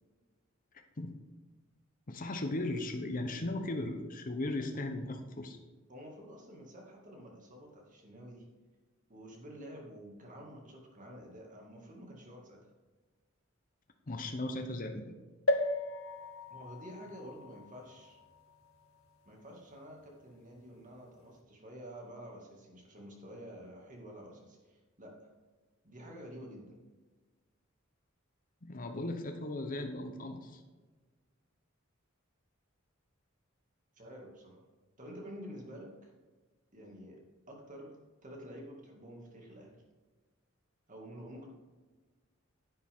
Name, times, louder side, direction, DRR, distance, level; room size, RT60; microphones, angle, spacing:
voice 1, 0.7-1.2 2.1-5.6 14.1-15.1 28.6-30.6, left 2 dB, 40° left, 5 dB, 0.9 m, -37 dB
voice 2, 5.9-8.5 9.1-12.7 16.5-18.2 19.3-25.3 25.8-26.8 33.9-34.6 35.0-36.1 36.7-37.2 37.5-38.0 38.2-39.8 40.9-41.5, equal, 40° right, 0 dB, 2.2 m, -49 dB
sound 1, 15.5-19.1 19.7-19.8 20.0-20.1, left 1 dB, 90° left, 1.0 m, -36 dB
10.5 x 8.8 x 3.7 m, 1.3 s
head